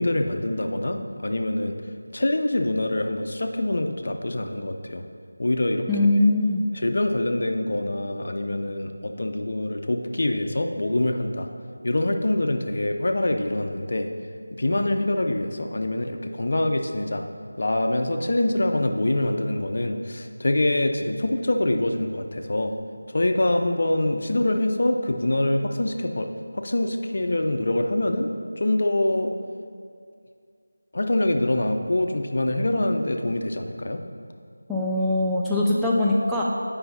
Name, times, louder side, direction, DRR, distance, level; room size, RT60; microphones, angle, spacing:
voice 1, 0.0-1.7 2.1-5.0 5.4-6.2 6.7-11.5 11.8-14.1 14.6-17.2 17.6-22.7 23.1-28.3 28.6-29.3 30.9-34.0, left 1 dB, 55° left, 5 dB, 0.6 m, -25 dB
voice 2, 5.9-6.6 34.7-36.4, left 2 dB, ahead, -9 dB, 0.3 m, -21 dB
7.8 x 5.6 x 4.1 m, 2.2 s
figure-of-eight pair, 170°, 0 cm